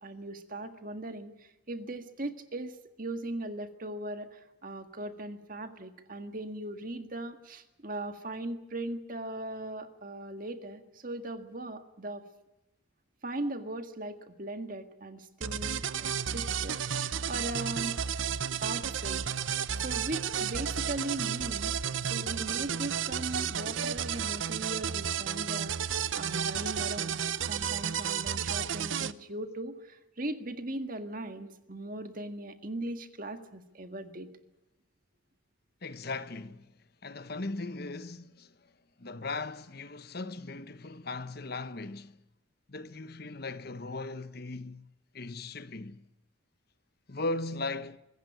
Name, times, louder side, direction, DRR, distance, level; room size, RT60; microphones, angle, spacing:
voice 1, 0.0-12.2 13.2-17.9 18.6-19.2 19.5-21.7 22.1-27.2 27.5-34.3, right 1 dB, 40° right, 1.8 m, -39 dB
sound 1, 15.4-29.1, right 8 dB, 70° right, 0.7 m, -32 dB
Bass guitar, 22.7-28.9, left 3 dB, 30° left, 5.4 m, -62 dB
voice 2, 35.8-36.7 37.0-38.7 39.0-42.2 42.7-44.9 45.1-46.0 47.1-48.0, left 3 dB, 50° left, 1.0 m, -38 dB
24.5 x 15.0 x 9.7 m
head